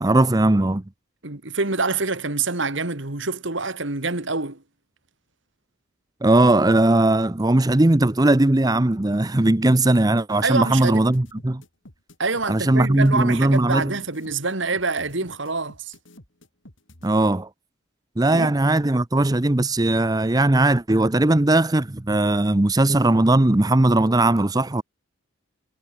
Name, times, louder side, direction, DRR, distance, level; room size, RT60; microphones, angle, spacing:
voice 1, 0.0-0.8 6.2-11.6 12.5-13.9 17.0-17.5 18.2-24.8, right 2 dB, 20° right, 0.6 m, -19 dB
voice 2, 1.2-4.6 10.4-11.0 12.2-15.9 18.3-18.5, right 3 dB, 60° right, 2.2 m, -26 dB
sound 1, 9.5-17.1, left 1 dB, 60° left, 4.4 m, -48 dB
head